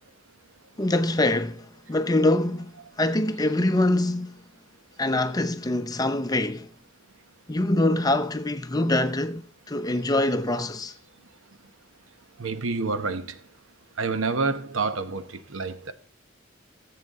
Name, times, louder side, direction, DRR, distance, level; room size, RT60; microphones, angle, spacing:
voice 1, 0.8-4.4 5.0-6.7 7.5-10.9, left 1 dB, 20° left, 0.6 m, -24 dB
voice 2, 12.4-13.4 14.0-15.9, right 4 dB, 85° right, 0.9 m, -28 dB
15.0 x 7.7 x 3.6 m
head